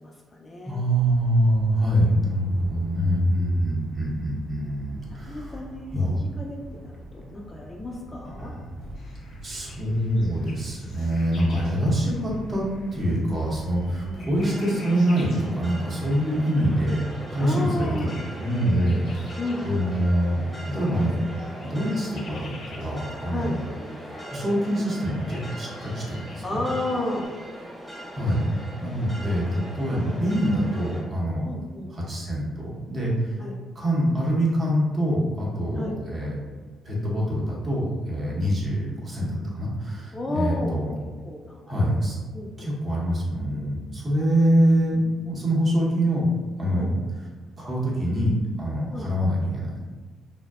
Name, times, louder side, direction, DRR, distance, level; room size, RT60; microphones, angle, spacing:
voice 1, 0.0-0.8 3.3-3.8 5.2-8.5 14.0-14.3 17.4-18.1 19.4-19.9 23.3-23.6 26.4-27.3 31.4-32.0 33.4-33.5 35.8-35.9 40.1-40.8 41.2-41.6 42.3-42.7 46.8-46.9 48.9-49.1, left 1 dB, 25° left, -1 dB, 0.3 m, -32 dB
voice 2, 0.6-5.6 5.9-6.2 8.4-8.7 9.4-12.6 12.9-18.1 18.4-20.4 20.7-21.2 21.6-23.6 24.3-26.6 28.1-31.5 31.9-33.4 33.7-36.4 36.8-40.9 41.7-42.2 42.6-46.2 46.6-47.0 47.6-48.3 48.6-49.8, equal, 35° right, -5 dB, 0.8 m, -25 dB
sound 1, 0.9-14.4, equal, 75° right, 0.4 m, -43 dB
sound 2, 8.9-27.3, left 2 dB, 75° left, 0.7 m, -50 dB
sound 3, 14.3-31.0, equal, ahead, 0.7 m, -40 dB
2.6 x 2.1 x 2.3 m, 1.4 s
cardioid pair, 90°, 0 cm